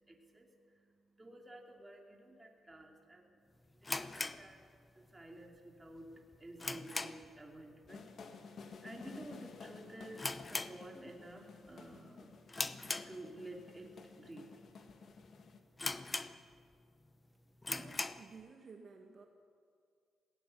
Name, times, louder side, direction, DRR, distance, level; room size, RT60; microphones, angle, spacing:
voice 1, 0.0-4.6 4.9-8.1 8.8-12.3 13.1-14.5, right 1 dB, 15° right, 1 dB, 2.6 m, -52 dB
sound 1, 3.8-5.2 5.5-5.6 6.1-7.4 7.7-8.0 8.3-8.4 9.1-9.4 9.6-9.7 10.1-11.3 11.7-12.0 12.5-13.6 14.2-14.3 14.9-15.0 15.2-15.3 15.8-16.7 17.1-17.2 17.6-18.3, left 2 dB, 15° left, 0.7 m, -40 dB
sound 2, 7.9-15.6, left 5 dB, 50° left, 1.8 m, -54 dB
voice 2, 17.7-19.3, right 4 dB, 40° right, 2 dB, 1.8 m, -54 dB
20.0 x 16.0 x 9.6 m, 2.3 s
cardioid pair, 150°, 0 cm